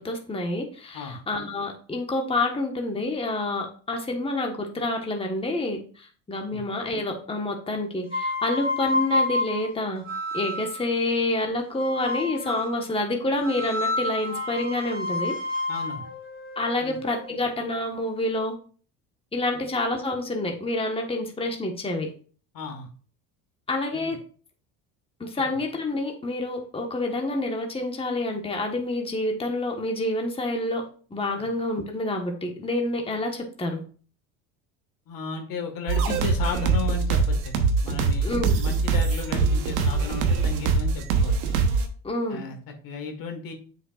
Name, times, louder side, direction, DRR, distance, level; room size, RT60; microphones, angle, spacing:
voice 1, 0.0-10.0 10.3-15.3 16.6-18.6 19.3-22.1 23.7-24.2 25.2-30.8 31.1-33.8 38.2-38.6 42.0-42.4, left 2 dB, 15° left, 2 dB, 1.3 m, -28 dB
sound 1, 8.1-10.9 11.8-12.8 13.4-17.4, left 1 dB, 20° right, 1.9 m, -29 dB
voice 2, 15.7-16.1 16.8-17.0 19.5-19.6 22.5-22.9 23.9-24.2 31.4-31.5 35.1-41.5 42.3-42.6 42.8-43.5, left 5 dB, 55° left, 5 dB, 1.7 m, -35 dB
sound 2, 35.9-41.8, right 4 dB, 85° right, 1.1 m, -23 dB
7.6 x 6.4 x 2.4 m, 0.41 s
hypercardioid pair, 75°, 41 cm